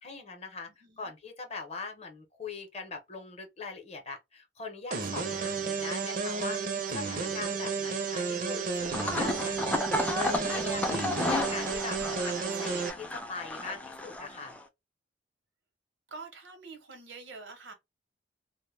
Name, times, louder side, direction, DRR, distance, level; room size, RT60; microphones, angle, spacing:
voice 1, 0.0-0.7 1.0-9.8 10.1-14.5, left 4 dB, 35° left, 0.7 m, -42 dB
voice 2, 0.8-1.1 16.1-17.7, right 4 dB, 80° right, 0.8 m, -46 dB
sound 1, 4.9-12.9, right 5 dB, 50° right, 0.5 m, -32 dB
sound 2, 8.8-14.6, left 1 dB, 10° left, 0.3 m, -33 dB
2.1 x 2.1 x 3.1 m
head